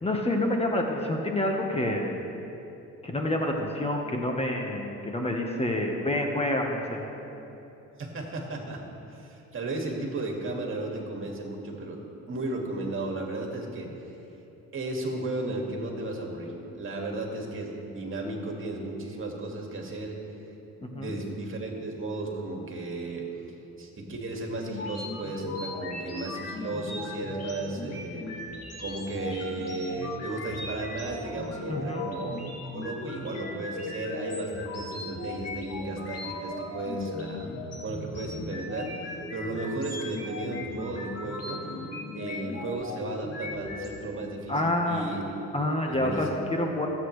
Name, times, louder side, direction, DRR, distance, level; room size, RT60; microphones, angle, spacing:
voice 1, 0.0-2.2 3.0-7.0 20.8-21.1 31.7-32.1 44.5-45.0 45.5-46.9, left 1 dB, 20° left, 1 dB, 1.3 m, -28 dB
voice 2, 8.0-8.8 9.1-12.0 12.3-13.9 14.7-20.2 20.9-23.3 23.8-28.3 28.8-32.4 32.7-38.9 39.3-41.6 42.1-44.6 44.9-45.2 45.9-46.3, right 2 dB, 45° right, 0 dB, 2.2 m, -34 dB
sound 1, 24.7-43.9, left 2 dB, 55° left, 2.7 m, -37 dB
24.5 x 8.5 x 3.3 m, 3.0 s
cardioid pair, 90°, 30 cm